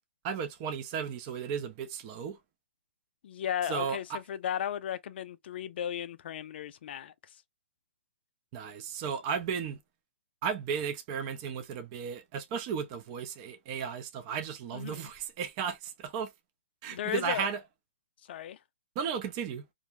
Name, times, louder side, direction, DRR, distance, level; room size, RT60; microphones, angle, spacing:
voice 1, 0.2-2.4 3.7-4.2 8.5-9.8 10.4-16.3 16.8-17.6 19.0-19.7, right 7 dB, 30° right, 0.5 m, -34 dB
voice 2, 3.2-7.4 14.7-15.1 16.9-17.5 18.2-18.6, left 10 dB, 55° left, 0.3 m, -35 dB
2.5 x 2.0 x 3.0 m
hypercardioid pair, 150°, 7 cm